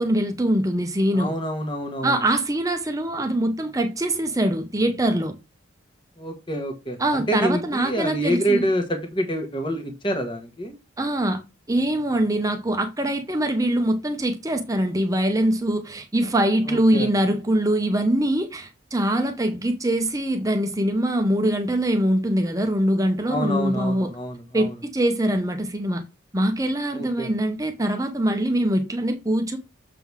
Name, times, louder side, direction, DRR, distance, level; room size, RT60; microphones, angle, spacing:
voice 1, 0.0-1.3 2.0-5.3 7.0-8.7 11.0-11.4 11.7-24.1 24.5-26.0 26.3-29.6, right 1 dB, 15° right, 0.8 m, -23 dB
voice 2, 1.1-2.1 6.2-10.8 16.7-17.1 23.3-24.7 26.9-27.3, equal, 25° left, 1.2 m, -27 dB
6.9 x 3.8 x 4.7 m
head